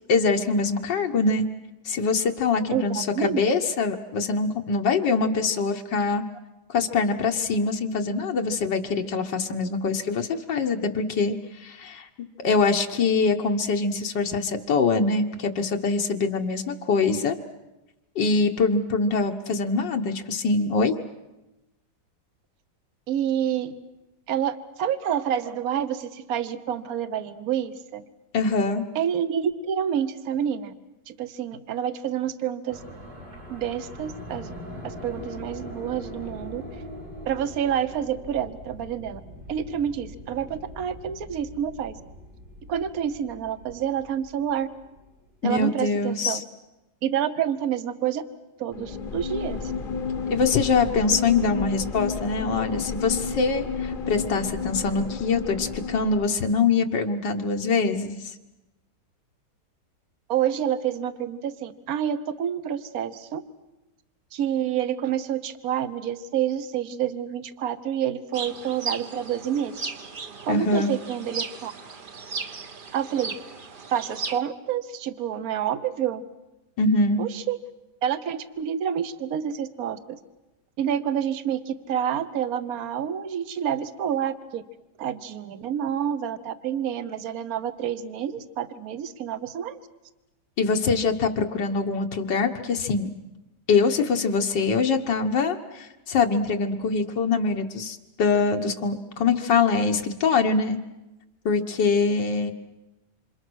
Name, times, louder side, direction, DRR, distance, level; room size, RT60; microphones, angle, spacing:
voice 1, 0.1-1.5 1.9-6.2 6.7-12.1 12.4-17.4 18.2-21.0 28.3-28.8 45.4-46.4 50.3-58.2 70.5-70.9 76.8-77.2 90.6-93.1 93.7-100.8 101.5-102.5, left 4 dB, 90° left, 3 dB, 2.0 m, -24 dB
voice 2, 2.7-3.4 23.1-23.7 24.3-28.0 28.9-30.7 31.1-32.8 33.5-34.5 34.8-36.6 37.3-39.2 39.5-42.0 42.7-44.7 45.4-46.4 47.0-48.2 48.6-49.7 60.3-63.4 64.3-69.9 70.4-71.7 72.9-73.3 73.9-76.2 77.2-77.6 78.0-80.2 80.8-84.6 85.0-89.8, right 9 dB, 60° right, 12 dB, 1.4 m, -28 dB
sound 1, 32.7-45.3, equal, 90° right, 5.7 m, -42 dB
sound 2, 48.7-56.5, left 5 dB, 35° left, 1.0 m, -31 dB
sound 3, 68.3-74.4, right 5 dB, 35° right, 1.0 m, -36 dB
28.0 x 26.5 x 6.3 m, 1.0 s
omnidirectional pair, 1.9 m